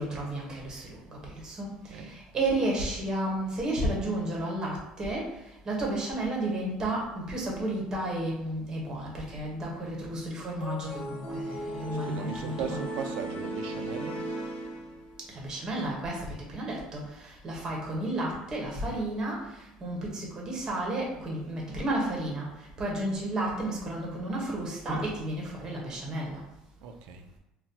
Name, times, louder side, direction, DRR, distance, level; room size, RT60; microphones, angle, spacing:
voice 1, 0.0-5.3 5.6-12.8 15.3-19.4 19.8-22.4 22.8-26.4, right 1 dB, 25° right, -2 dB, 1.0 m, -32 dB
sound 1, 10.6-15.3, right 1 dB, 55° left, 0.9 m, -37 dB
voice 2, 12.0-14.2 26.8-27.2, right 6 dB, 75° right, 6 dB, 0.4 m, -37 dB
4.0 x 2.3 x 2.7 m, 0.88 s
cardioid pair, 145°, 3 cm